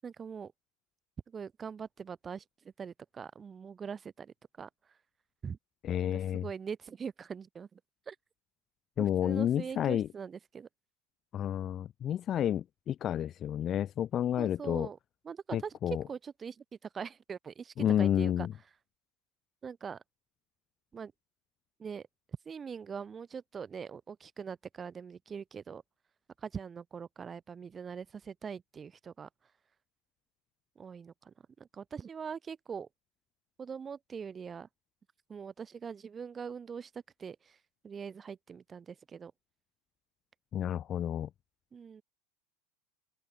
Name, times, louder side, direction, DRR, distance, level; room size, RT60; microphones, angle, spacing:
voice 1, 0.0-0.5 1.3-2.4 2.8-4.7 5.4-5.6 6.0-7.8 8.1-8.2 9.0-10.7 14.4-15.0 15.2-15.8 16.1-16.6 16.9-18.5 19.6-20.0 20.9-21.1 21.8-22.1 22.4-25.8 26.4-29.3 30.8-32.9 33.6-34.7 35.3-37.6 37.8-39.3 41.7-42.0, right 6 dB, 15° right, 6.4 m, -42 dB
voice 2, 5.8-6.4 9.0-10.1 11.3-14.9 15.5-16.0 17.8-18.5 40.5-41.3, left 10 dB, 20° left, 2.7 m, -30 dB
supercardioid pair, 180°, 0 cm